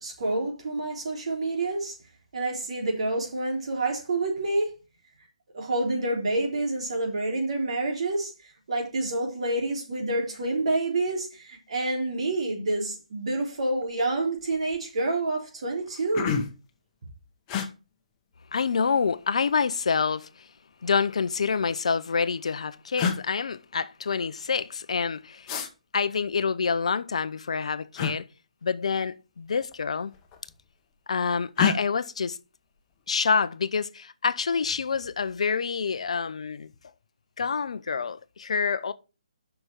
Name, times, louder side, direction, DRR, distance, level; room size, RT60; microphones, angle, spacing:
voice 1, 0.0-2.0 2.3-4.7 5.5-8.3 8.7-16.4, right 2 dB, 55° right, 3.6 m, -28 dB
sound 1, 13.7-14.0 14.4-14.8 15.4-15.5 15.8-16.7 17.5-17.7 18.9-19.6 20.7-21.6 22.5-22.6 23.0-23.2 25.5-25.7 27.9-28.2 29.5-29.8 30.1-30.7 31.5-31.8, left 7 dB, 25° left, 1.3 m, -29 dB
voice 2, 18.5-20.5 20.8-25.5 25.9-28.3 28.6-30.1 31.1-32.4 33.1-36.7 37.4-38.9, left 5 dB, 60° left, 0.7 m, -27 dB
6.1 x 5.9 x 6.7 m
figure-of-eight pair, 145°, 4 cm